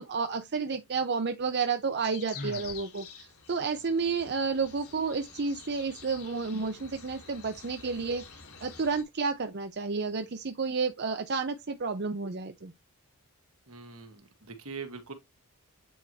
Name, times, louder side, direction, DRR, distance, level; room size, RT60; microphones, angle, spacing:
voice 1, 0.0-8.2 8.6-12.7, right 4 dB, 50° right, 0.7 m, -31 dB
sound 1, 2.0-9.0, left 6 dB, 75° left, 2.3 m, -49 dB
Sigh, 2.3-2.9, left 2 dB, 40° left, 0.8 m, -39 dB
voice 2, 13.7-15.1, right 5 dB, 70° right, 1.8 m, -42 dB
9.0 x 4.6 x 2.8 m
head